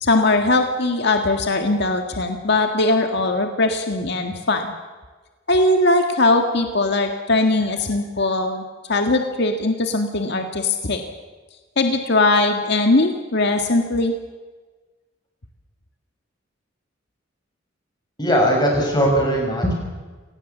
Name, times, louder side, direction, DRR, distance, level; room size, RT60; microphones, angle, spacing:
voice 1, 0.0-4.7 5.5-11.0 11.8-14.2, left 2 dB, 60° left, 4 dB, 1.8 m, -20 dB
voice 2, 18.2-19.7, equal, 20° left, 0 dB, 7.1 m, -19 dB
27.0 x 19.0 x 7.3 m, 1.3 s
head